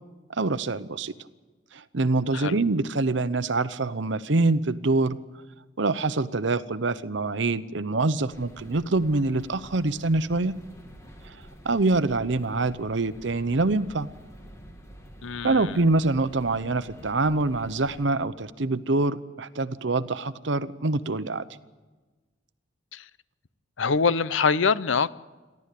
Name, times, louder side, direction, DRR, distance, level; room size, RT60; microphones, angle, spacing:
voice 1, 0.4-1.1 1.7-5.2 5.8-10.5 11.6-14.1 15.4-21.4, right 3 dB, 65° right, 14 dB, 0.8 m, -25 dB
sound 1, 8.3-18.1, equal, 15° left, 2.1 m, -48 dB
voice 2, 15.2-15.8 22.9-23.1 23.8-25.1, left 5 dB, 75° left, 17 dB, 0.7 m, -24 dB
28.5 x 12.0 x 8.4 m, 1.3 s
head